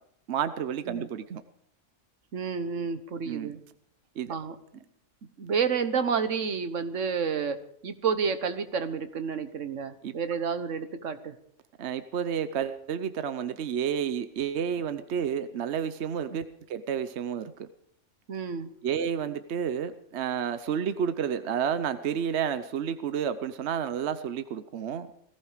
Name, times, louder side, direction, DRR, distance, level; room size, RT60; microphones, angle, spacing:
voice 1, 0.3-1.4 3.3-3.5 4.2-4.3 10.0-10.1 11.8-16.4 16.7-17.7 18.8-25.1, right 8 dB, 65° right, 11 dB, 1.1 m, -30 dB
voice 2, 2.3-3.6 4.3-4.6 5.4-11.3 16.3-16.4 18.3-18.7, right 6 dB, 85° right, 11 dB, 1.5 m, -30 dB
18.5 x 15.5 x 5.0 m, 0.70 s
omnidirectional pair, 1.2 m